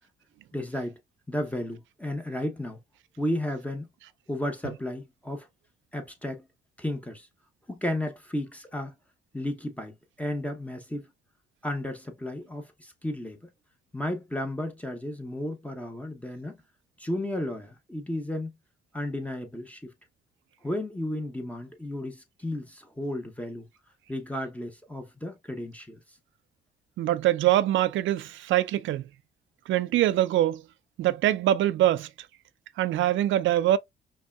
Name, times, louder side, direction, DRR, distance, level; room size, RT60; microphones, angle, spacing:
voice 1, 0.5-1.0 1.3-2.8 3.2-3.9 4.3-5.5 5.9-6.4 6.8-7.3 7.7-8.9 9.3-11.0 11.6-13.4 13.9-16.6 17.0-18.5 18.9-19.9 20.6-23.7 24.1-26.0, left 1 dB, 5° left, 0.8 m, -33 dB
voice 2, 27.0-29.0 29.7-30.6 31.0-32.1 32.8-33.8, right 13 dB, 75° right, 0.5 m, -23 dB
5.3 x 2.2 x 2.3 m
cardioid pair, 90°, 20 cm